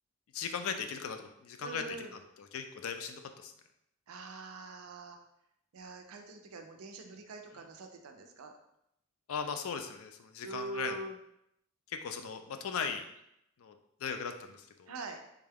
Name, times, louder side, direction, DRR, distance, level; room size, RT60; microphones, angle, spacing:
voice 1, 0.3-1.8 2.5-3.5 9.3-10.9 11.9-13.0 13.6-14.9, left 6 dB, 75° left, 7 dB, 0.4 m, -38 dB
voice 2, 1.6-2.1 4.1-5.3 5.7-8.5 10.4-11.2 14.9-15.2, right 3 dB, 90° right, 5 dB, 0.5 m, -44 dB
3.6 x 2.2 x 3.4 m, 0.79 s
head